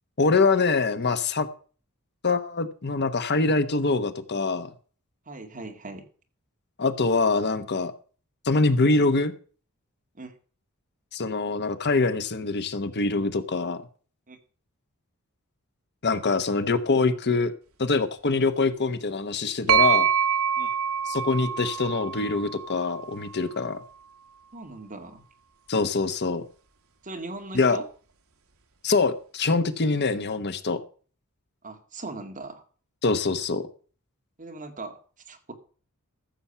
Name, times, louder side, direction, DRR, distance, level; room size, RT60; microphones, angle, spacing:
voice 1, 0.2-1.5 2.2-4.7 6.8-7.9 8.4-9.3 11.1-13.8 16.0-17.5 17.8-20.1 21.1-23.8 25.7-26.4 27.5-27.8 28.8-30.8 33.0-33.7, left 3 dB, 50° left, 11 dB, 1.0 m, -24 dB
voice 2, 5.3-6.0 10.2-10.3 14.3-14.4 20.6-20.7 24.5-25.2 27.0-27.9 31.6-32.6 34.4-35.0 35.3-35.5, right 2 dB, 40° right, 4 dB, 2.1 m, -39 dB
sound 1, 19.7-23.4, right 8 dB, 70° right, 1.6 m, -25 dB
14.5 x 7.1 x 5.7 m, 0.40 s
head